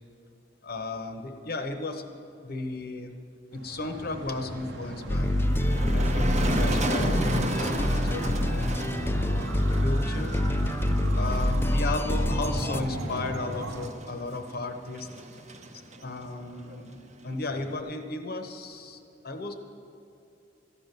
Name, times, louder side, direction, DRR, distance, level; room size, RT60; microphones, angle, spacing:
voice 1, 0.6-2.1 2.4-3.2 3.5-5.3 5.9-8.7 9.2-10.4 11.2-15.1 16.0-16.9 17.2-19.5, left 2 dB, 55° left, 6 dB, 0.9 m, -35 dB
sound 1, 3.5-13.9, right 1 dB, 80° right, 1.0 m, -36 dB
sound 2, 5.1-12.8, left 1 dB, 15° left, 0.4 m, -26 dB
Motor vehicle (road), 5.1-17.8, right 1 dB, 40° right, 0.8 m, -35 dB
13.5 x 9.1 x 6.7 m, 2.6 s
head